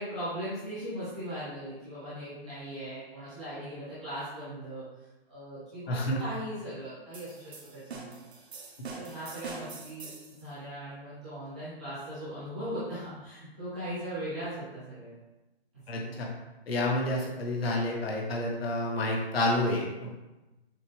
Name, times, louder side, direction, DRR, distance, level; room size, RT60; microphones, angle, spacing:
voice 1, 0.0-4.8 5.3-8.2 8.9-10.1 10.4-15.1 15.9-16.3, equal, 5° right, -15 dB, 0.5 m, -39 dB
voice 2, 5.9-6.2 15.9-16.3 16.7-20.1, left 1 dB, 65° left, -1 dB, 1.2 m, -29 dB
sound 1, 7.1-10.4, right 4 dB, 80° right, 1.1 m, -44 dB
6.5 x 2.2 x 3.1 m, 1.0 s
hypercardioid pair, 170°, 32 cm